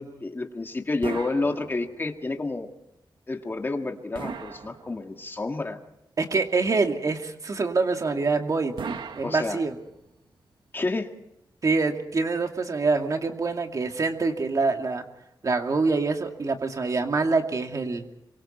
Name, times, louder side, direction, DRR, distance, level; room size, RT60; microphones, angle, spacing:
voice 1, 0.0-2.7 3.3-5.8 9.2-9.6 10.7-11.1, left 3 dB, 25° left, 4 dB, 1.9 m, -30 dB
sound 1, 1.0-2.2 4.1-5.4 8.8-10.1, right 5 dB, 80° right, 1.5 m, -38 dB
voice 2, 6.2-8.7 9.2-9.7 11.6-15.0 15.4-18.1, right 3 dB, 45° right, 4 dB, 2.4 m, -25 dB
26.0 x 24.0 x 4.4 m, 0.84 s
wide cardioid pair, 170°, 8 cm